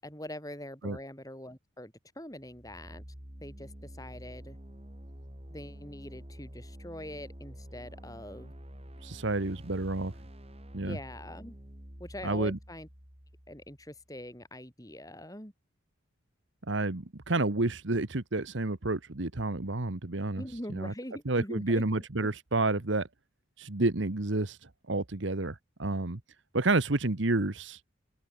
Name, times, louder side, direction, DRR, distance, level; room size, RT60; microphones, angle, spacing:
voice 1, 0.0-3.0 3.4-4.6 5.5-8.5 10.8-11.5 12.0-12.9 13.5-15.5 20.4-21.8, left 1 dB, 15° left, 7.4 m, -43 dB
sound 1, 2.4-14.2, equal, 30° right, 5.0 m, -48 dB
voice 2, 9.0-10.1 10.7-11.0 12.2-12.6 16.7-20.4 20.7-20.9 21.2-23.1 23.6-24.6 24.9-26.2 26.5-27.8, right 2 dB, 65° right, 1.3 m, -30 dB
open air
head